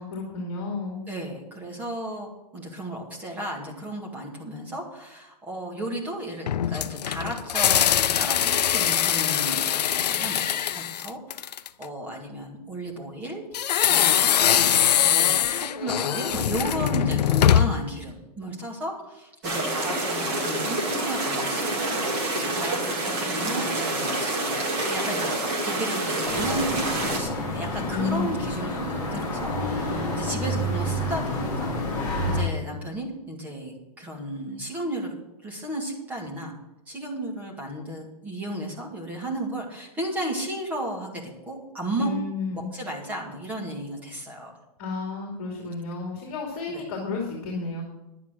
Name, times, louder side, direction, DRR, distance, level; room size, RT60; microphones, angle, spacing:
voice 1, 0.0-1.0 27.9-28.4 42.0-42.7 44.8-47.8, left 4 dB, 35° left, -1 dB, 2.8 m, -31 dB
voice 2, 1.1-2.3 2.5-31.7 32.2-36.5 36.9-42.1 42.5-44.5 46.7-46.8, right 1 dB, 10° right, -1 dB, 1.9 m, -34 dB
sound 1, 6.5-11.8 13.5-17.9, left 10 dB, 80° left, 0.6 m, -22 dB
sound 2, 19.4-27.2, right 2 dB, 25° right, 2.4 m, -27 dB
sound 3, 26.2-32.4, left 1 dB, 10° left, 4.1 m, -29 dB
11.0 x 9.2 x 6.3 m, 0.93 s
hypercardioid pair, 175°, 21 cm